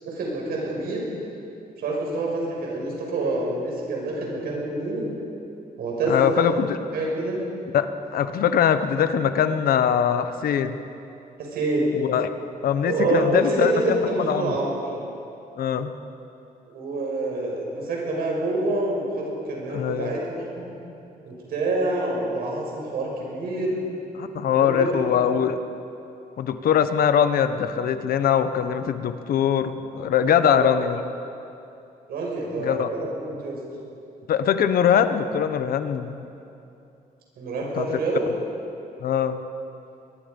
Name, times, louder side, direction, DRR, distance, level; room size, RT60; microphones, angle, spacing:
voice 1, 0.0-1.1 1.8-5.1 5.8-6.5 6.9-7.4 11.4-11.9 12.9-14.8 16.7-20.7 21.3-23.9 24.5-25.0 30.3-30.7 32.1-33.6 37.4-38.2, right 2 dB, 90° right, -2 dB, 6.3 m, -27 dB
voice 2, 6.1-6.8 7.7-7.9 8.1-10.8 11.9-12.3 12.6-14.5 15.6-15.9 19.7-20.2 24.1-25.6 26.4-31.0 32.6-32.9 34.3-36.3 37.7-37.9 39.0-39.4, left 8 dB, 75° left, 10 dB, 1.1 m, -22 dB
22.5 x 22.0 x 5.4 m, 2.8 s
wide cardioid pair, 170°, 15 cm